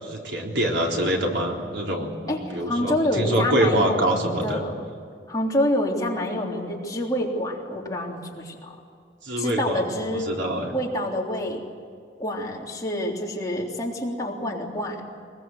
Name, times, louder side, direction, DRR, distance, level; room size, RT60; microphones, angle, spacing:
voice 1, 0.0-4.7 9.2-9.8 10.1-10.7, right 1 dB, 85° right, 0 dB, 3.8 m, -25 dB
voice 2, 2.3-4.7 5.3-8.7 9.4-10.3 10.7-11.6 12.2-15.0, left 1 dB, 20° left, -2 dB, 3.5 m, -27 dB
23.0 x 21.5 x 8.0 m, 2.3 s
head